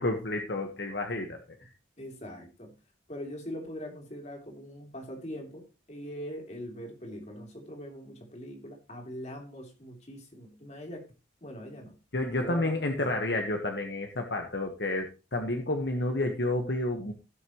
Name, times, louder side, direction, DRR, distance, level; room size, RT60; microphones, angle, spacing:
voice 1, 0.0-1.4 12.1-17.1, left 2 dB, 60° left, 4 dB, 1.4 m, -30 dB
voice 2, 2.0-2.7 3.1-5.6 5.9-11.1 11.4-12.0 12.4-13.1, equal, 35° left, 1 dB, 3.5 m, -42 dB
17.0 x 6.7 x 3.1 m, 0.30 s
head